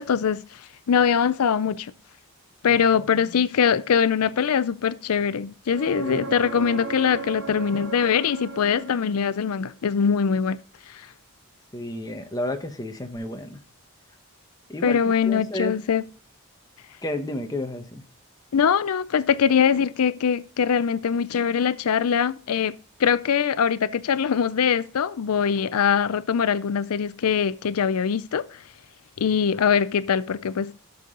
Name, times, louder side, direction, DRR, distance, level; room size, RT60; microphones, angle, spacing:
voice 1, 0.0-1.9 2.6-10.6 10.9-11.1 14.8-16.0 18.5-22.7 23.0-28.6 29.2-30.7, left 7 dB, 80° left, 0.5 m, -22 dB
voice 2, 2.7-3.4 6.0-6.2 11.7-13.6 14.7-15.7 17.0-18.0, left 1 dB, 15° left, 1.1 m, -32 dB
sound 1, 5.7-9.5 13.2-13.3, right 4 dB, 90° right, 1.9 m, -36 dB
13.0 x 6.9 x 3.8 m
head